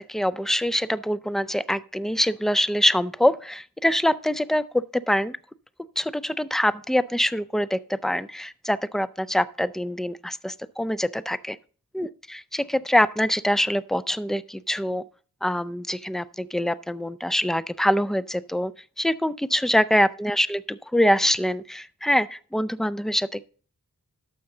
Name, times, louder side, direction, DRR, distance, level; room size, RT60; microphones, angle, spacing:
voice 1, 0.0-5.4 6.0-11.6 11.9-15.0 15.4-18.7 19.0-23.5, equal, ahead, 0.4 m, -24 dB
12.0 x 7.0 x 3.8 m
wide cardioid pair, 55°, 36 cm